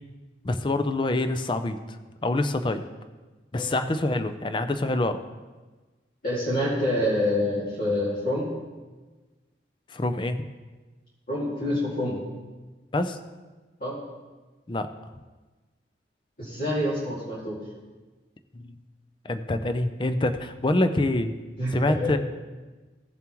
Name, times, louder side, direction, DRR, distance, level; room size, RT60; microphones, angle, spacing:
voice 1, 0.4-1.8 2.2-2.8 3.5-5.2 9.9-10.4 12.9-13.2 14.7-14.9 18.5-18.8 19.2-21.3 21.7-22.2, left 2 dB, 25° left, 9 dB, 0.5 m, -26 dB
voice 2, 6.2-8.5 11.3-12.2 13.8-14.0 16.4-17.6 21.6-22.1, left 1 dB, 50° left, -9 dB, 2.3 m, -27 dB
16.5 x 7.2 x 3.0 m, 1.3 s
head